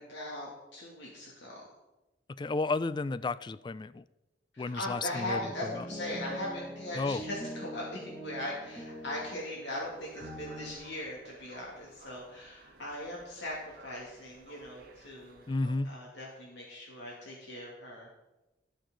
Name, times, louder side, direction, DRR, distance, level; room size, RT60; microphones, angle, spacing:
voice 1, 0.0-1.6 4.5-15.5 15.8-18.1, left 1 dB, 85° left, -4 dB, 2.4 m, -40 dB
voice 2, 2.4-4.0 4.6-5.8 7.0-7.2 15.5-15.9, left 3 dB, 25° left, 16 dB, 0.3 m, -32 dB
sound 1, 5.1-10.7, equal, 5° left, 2.7 m, -43 dB
sound 2, 9.8-15.7, right 3 dB, 55° right, 1.3 m, -56 dB
19.5 x 6.5 x 3.9 m, 1.0 s
head